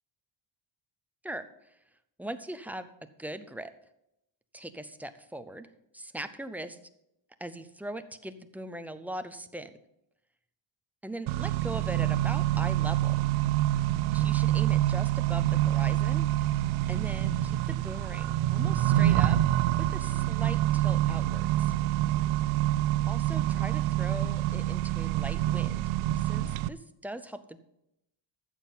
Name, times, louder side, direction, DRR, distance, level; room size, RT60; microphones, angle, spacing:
voice 1, 1.2-1.8 2.2-2.9 3.2-3.7 4.5-5.7 5.9-6.8 7.4-9.7 11.0-13.3 14.1-16.6 16.9-19.4 19.8-21.7 23.1-27.6, right 1 dB, 5° right, 9 dB, 0.5 m, -40 dB
Accelerating revving vroom, 11.3-26.7, right 14 dB, 85° right, 0.6 m, -26 dB
13.5 x 7.4 x 5.5 m, 0.81 s
cardioid pair, 160°, 47 cm